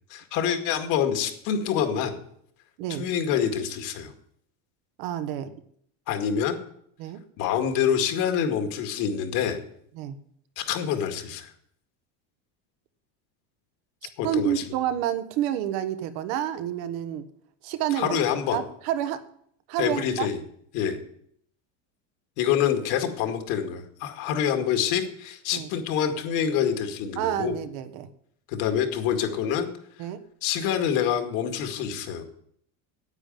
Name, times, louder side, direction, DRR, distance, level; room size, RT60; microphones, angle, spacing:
voice 1, 0.1-2.2 3.0-4.1 6.1-6.6 7.4-9.6 10.6-11.5 14.2-14.6 18.0-18.6 19.8-20.4 20.7-21.0 22.4-27.6 28.5-29.7 30.4-32.3, left 8 dB, 55° left, 5 dB, 2.2 m, -26 dB
voice 2, 5.0-5.5 7.0-7.2 10.0-10.2 14.0-17.2 17.6-18.2 18.5-19.2 19.7-20.3 25.5-25.7 27.2-28.1 30.0-30.2, right 11 dB, 65° right, 10 dB, 1.3 m, -29 dB
9.8 x 9.0 x 9.2 m, 0.68 s
cardioid pair, 165°, 37 cm